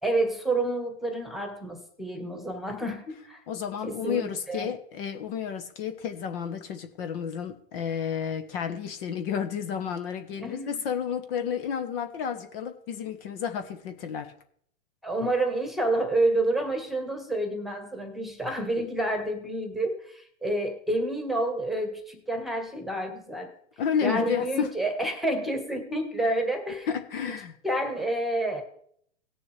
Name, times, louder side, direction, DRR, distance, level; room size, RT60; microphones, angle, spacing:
voice 1, 0.0-3.4 3.8-4.7 10.4-10.8 15.0-23.5 24.0-26.9 27.6-28.6, right 1 dB, ahead, 6 dB, 1.4 m, -29 dB
voice 2, 3.5-14.3 23.8-24.7 26.9-27.6, left 7 dB, 55° left, 8 dB, 1.2 m, -31 dB
18.0 x 6.9 x 3.3 m, 0.66 s
hypercardioid pair, 125°, 35 cm